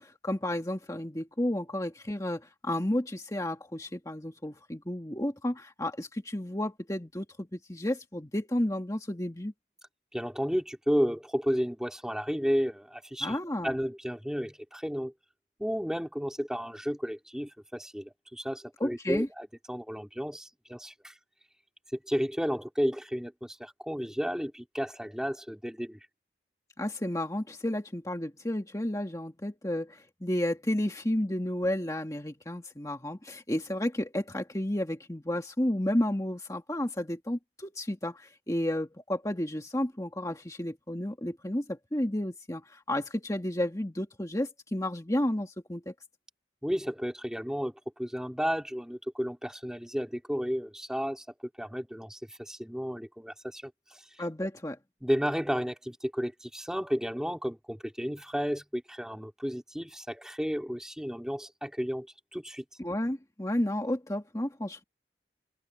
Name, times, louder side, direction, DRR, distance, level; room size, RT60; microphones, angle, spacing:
voice 1, 0.0-9.5 13.2-13.8 18.8-19.3 26.8-45.9 54.2-54.8 62.8-64.8, left 1 dB, 20° left, 1.7 m, -32 dB
voice 2, 10.1-13.4 13.6-15.1 15.6-21.1 21.9-26.0 46.6-47.7 48.0-54.0 55.0-62.1 62.3-62.6, equal, 5° right, 2.1 m, -32 dB
open air
head